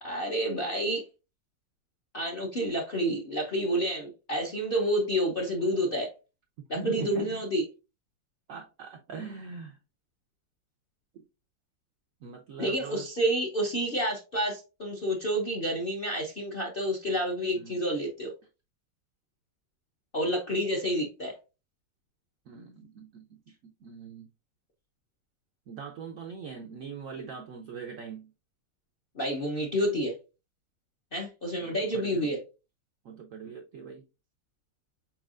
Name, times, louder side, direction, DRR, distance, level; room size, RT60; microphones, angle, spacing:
voice 1, 0.0-1.0 2.1-6.1 6.7-7.6 12.6-18.3 20.1-21.3 29.1-30.2 31.1-32.4, equal, 50° left, 0.6 m, -29 dB
voice 2, 6.6-7.4 8.5-9.8 11.1-11.2 12.2-13.1 17.5-17.8 22.5-24.3 25.7-28.3 31.6-32.3 33.0-34.1, right 5 dB, 75° right, 0.7 m, -41 dB
4.7 x 4.4 x 2.4 m
omnidirectional pair, 2.0 m